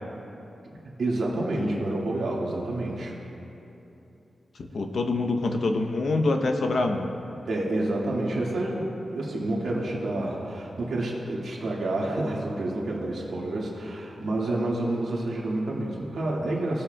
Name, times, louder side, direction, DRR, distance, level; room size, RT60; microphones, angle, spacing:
voice 1, 1.0-3.2 7.4-16.8, right 2 dB, 70° right, -4 dB, 1.8 m, -29 dB
voice 2, 4.6-7.1, left 2 dB, 60° left, 4 dB, 0.7 m, -26 dB
19.0 x 7.0 x 2.2 m, 2.9 s
wide cardioid pair, 165°, 0 cm